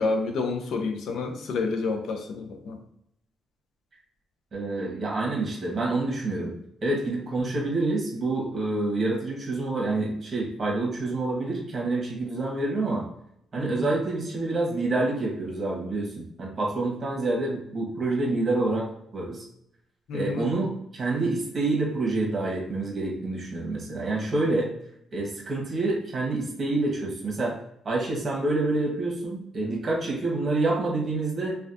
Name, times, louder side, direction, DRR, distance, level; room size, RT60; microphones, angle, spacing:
voice 1, 0.0-2.8 7.4-7.5 13.6-13.8 20.1-20.4, left 3 dB, 70° left, 5 dB, 0.5 m, -29 dB
voice 2, 4.5-6.5 6.8-13.0 13.5-18.9 19.1-19.4 20.1-24.7 25.1-27.6 27.8-31.6, right 2 dB, 40° right, -2 dB, 1.3 m, -27 dB
3.2 x 2.4 x 2.7 m, 0.74 s
cardioid pair, 90°, 0 cm